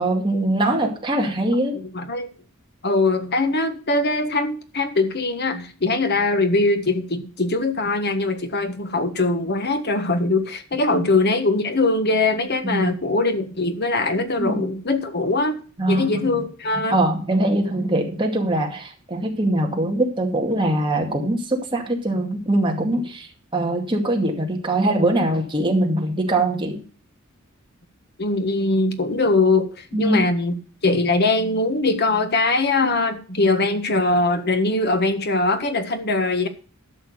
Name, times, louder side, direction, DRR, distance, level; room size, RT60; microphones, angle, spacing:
voice 1, 0.0-1.8 10.9-11.1 12.6-13.0 14.4-14.6 15.8-16.4 16.9-26.8 29.9-30.2, right 1 dB, 25° right, 1 dB, 2.2 m, -22 dB
voice 2, 1.9-2.3 2.8-17.0 28.2-30.6 30.8-36.5, left 2 dB, 50° left, 8 dB, 1.5 m, -21 dB
12.0 x 6.3 x 6.5 m, 0.40 s
head